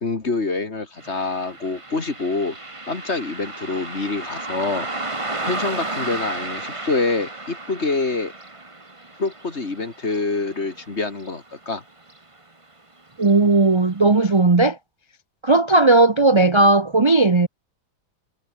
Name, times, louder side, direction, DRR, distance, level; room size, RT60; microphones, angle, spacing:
voice 1, 0.0-2.6 2.9-5.1 5.4-8.3 9.2-11.8, left 3 dB, 35° left, 2.7 m, -26 dB
Car passing by, 1.0-11.8 12.1-12.2 13.1-13.3 13.8-13.9 14.4-14.5, right 2 dB, 15° right, 1.8 m, -33 dB
voice 2, 13.2-14.8 15.4-17.5, right 2 dB, 35° right, 0.4 m, -16 dB
omnidirectional pair, 2.1 m